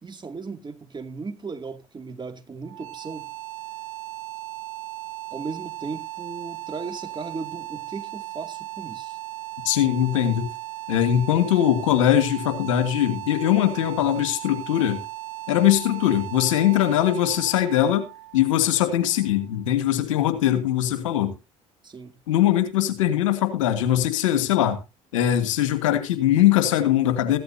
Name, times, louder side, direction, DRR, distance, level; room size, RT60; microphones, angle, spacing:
voice 1, 0.0-3.3 5.3-9.2 21.8-22.2, right 4 dB, 30° right, 2.4 m, -36 dB
sound 1, 2.6-19.6, right 17 dB, 85° right, 1.0 m, -37 dB
voice 2, 9.6-10.5 10.9-15.0 15.5-18.1 18.3-21.3 22.3-24.8 25.1-27.4, left 11 dB, 85° left, 1.7 m, -21 dB
15.0 x 12.0 x 2.8 m
hypercardioid pair, 60°, 16 cm